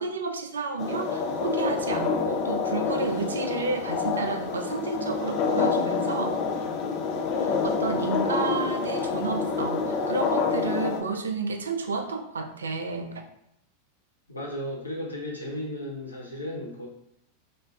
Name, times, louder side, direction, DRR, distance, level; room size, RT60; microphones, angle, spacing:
voice 1, 0.0-6.4 7.4-13.1, right 4 dB, 75° right, 5 dB, 0.3 m, -31 dB
sound 1, 0.8-11.0, left 5 dB, 45° left, 0.4 m, -27 dB
voice 2, 14.3-16.9, left 1 dB, 85° left, -2 dB, 0.7 m, -35 dB
2.5 x 2.2 x 3.4 m, 0.75 s
figure-of-eight pair, 90°, 0 cm